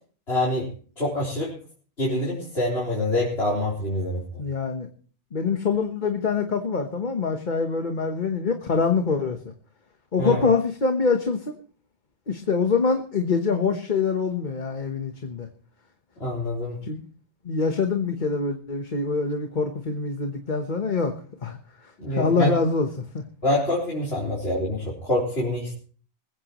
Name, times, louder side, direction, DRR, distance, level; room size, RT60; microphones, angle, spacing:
voice 1, 0.3-0.7 1.0-1.5 2.0-4.2 10.2-10.5 16.2-16.8 22.0-22.5 23.4-25.7, left 1 dB, 70° left, -5 dB, 4.3 m, -25 dB
voice 2, 4.4-4.9 5.3-9.5 10.1-11.5 12.3-15.5 16.8-17.1 17.4-21.1 21.4-23.2, left 4 dB, 45° left, 5 dB, 1.3 m, -25 dB
21.0 x 15.5 x 3.1 m, 0.43 s
omnidirectional pair, 1.1 m